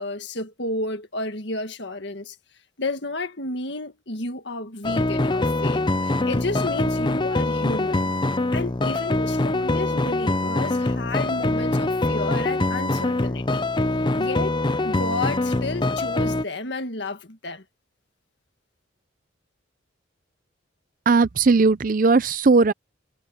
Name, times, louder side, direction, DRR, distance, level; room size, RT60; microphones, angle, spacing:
voice 1, 0.0-2.4 2.8-8.1 8.5-13.6 14.2-14.6 14.8-17.6, left 2 dB, 60° left, 1.8 m, -31 dB
sound 1, 4.8-16.4, left 2 dB, 25° left, 0.6 m, -24 dB
voice 2, 21.1-22.7, right 4 dB, 45° right, 0.5 m, -18 dB
head